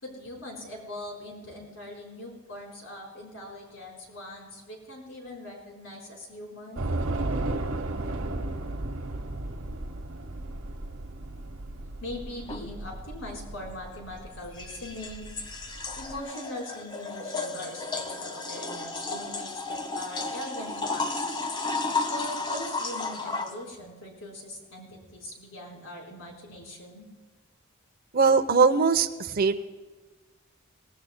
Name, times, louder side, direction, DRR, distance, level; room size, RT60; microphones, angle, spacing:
voice 1, 0.0-6.8 12.0-15.3 15.9-21.3 22.1-27.1, left 1 dB, 75° left, -1 dB, 4.2 m, -41 dB
Train / Subway metro underground, 6.8-16.2, right 2 dB, 90° right, 1.0 m, -35 dB
sound 1, 12.5-12.6 14.3-23.6, left 3 dB, 25° left, 1.0 m, -33 dB
voice 2, 28.1-29.7, right 5 dB, 50° right, 8 dB, 0.7 m, -21 dB
20.5 x 18.0 x 2.2 m, 1.3 s
head